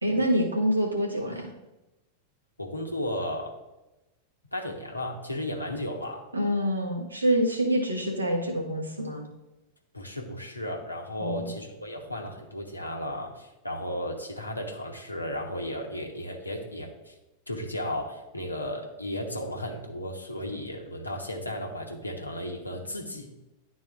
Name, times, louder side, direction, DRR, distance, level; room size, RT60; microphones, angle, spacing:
voice 1, 0.0-1.5 6.3-9.3 11.2-11.5, equal, 80° right, -1 dB, 1.3 m, -26 dB
voice 2, 2.6-3.6 4.5-6.3 9.9-17.1 17.5-23.3, left 1 dB, 85° left, 1 dB, 1.0 m, -34 dB
11.0 x 4.0 x 2.5 m, 1.0 s
figure-of-eight pair, 90°, 0 cm